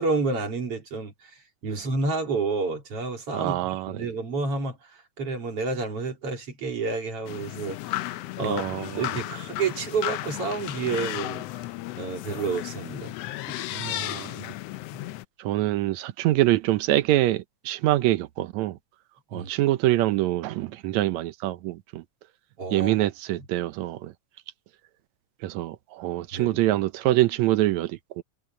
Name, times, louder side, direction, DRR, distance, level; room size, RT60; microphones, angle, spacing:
voice 1, 0.0-11.5 12.0-13.1 13.5-13.6 14.9-15.0 19.3-19.5 22.6-23.1 26.3-26.6, right 4 dB, 50° right, 4.0 m, -30 dB
voice 2, 3.3-4.1 8.4-9.0 13.7-14.5 15.4-18.8 19.3-22.0 22.7-24.1 25.4-28.2, right 15 dB, 75° right, 2.0 m, -25 dB
sound 1, 7.3-15.3, left 16 dB, 75° left, 1.5 m, -34 dB
omnidirectional pair, 3.4 m